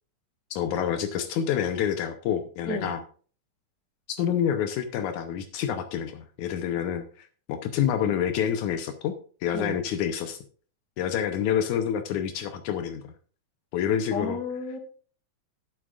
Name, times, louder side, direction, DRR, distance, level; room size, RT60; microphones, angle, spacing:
voice 1, 0.5-3.0 4.2-9.1 9.4-10.4 11.0-13.1 13.7-14.4, left 9 dB, 85° left, 8 dB, 2.3 m, -28 dB
voice 2, 14.1-14.8, left 3 dB, 40° left, 3 dB, 2.8 m, -31 dB
12.0 x 11.0 x 2.5 m, 0.41 s
omnidirectional pair, 3.4 m